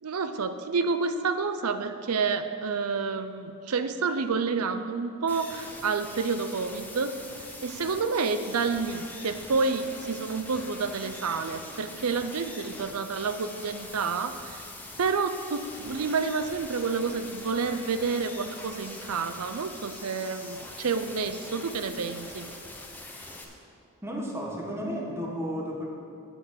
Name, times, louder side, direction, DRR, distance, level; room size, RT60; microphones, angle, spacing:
voice 1, 0.0-7.1 7.6-14.7 15.0-22.5, right 4 dB, 85° right, 10 dB, 0.6 m, -29 dB
sound 1, 5.3-23.4, left 2 dB, 10° left, 0.9 m, -43 dB
voice 2, 24.0-25.9, equal, 10° right, -2 dB, 1.2 m, -33 dB
8.0 x 6.4 x 8.1 m, 2.5 s
head